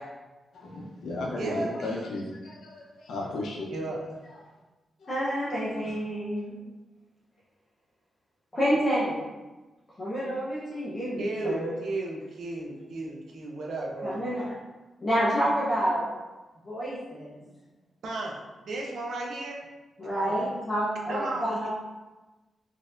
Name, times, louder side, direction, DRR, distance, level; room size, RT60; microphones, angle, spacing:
voice 1, 0.5-3.7 4.3-4.5 5.0-6.0, left 2 dB, 75° left, -2 dB, 0.7 m, -36 dB
voice 2, 1.4-1.9 3.7-4.0 11.2-14.2 18.0-18.4 18.6-19.6 20.2-20.3 21.1-21.7, right 2 dB, 70° right, -1 dB, 0.6 m, -34 dB
voice 3, 5.1-6.5 8.5-9.2 10.0-11.7 14.0-14.4 15.0-16.1 16.6-17.3 20.0-21.7, equal, 25° left, -10 dB, 0.8 m, -28 dB
4.1 x 2.6 x 2.5 m, 1.2 s
wide cardioid pair, 155°, 0 cm